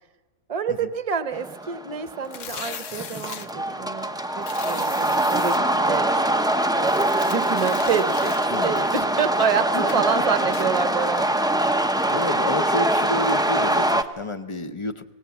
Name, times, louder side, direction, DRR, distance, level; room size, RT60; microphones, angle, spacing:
voice 1, 0.5-6.4 6.8-8.3 8.6-11.4, right 6 dB, 30° right, 10 dB, 0.9 m, -28 dB
sound 1, 1.3-14.0, right 1 dB, 5° right, 0.3 m, -23 dB
sound 2, 2.2-3.5 4.4-5.6 6.8-9.5 9.9-10.1 10.5-10.7, left 7 dB, 60° left, 1.3 m, -39 dB
voice 2, 8.5-8.8 9.7-9.8 12.1-15.1, left 1 dB, 25° left, 10 dB, 0.7 m, -30 dB
23.5 x 18.0 x 7.1 m, 1.2 s
omnidirectional pair, 1.5 m